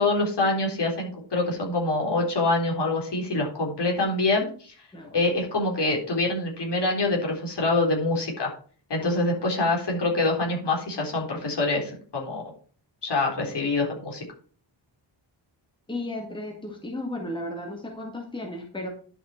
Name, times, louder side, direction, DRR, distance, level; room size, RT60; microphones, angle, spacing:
voice 1, 0.0-4.7 5.1-8.5 8.9-12.4 13.0-14.2, left 2 dB, 60° left, -1 dB, 3.9 m, -25 dB
voice 2, 9.0-9.6 15.9-18.9, left 1 dB, 10° left, 2 dB, 1.7 m, -35 dB
11.5 x 5.8 x 4.4 m, 0.43 s
wide cardioid pair, 145°, 46 cm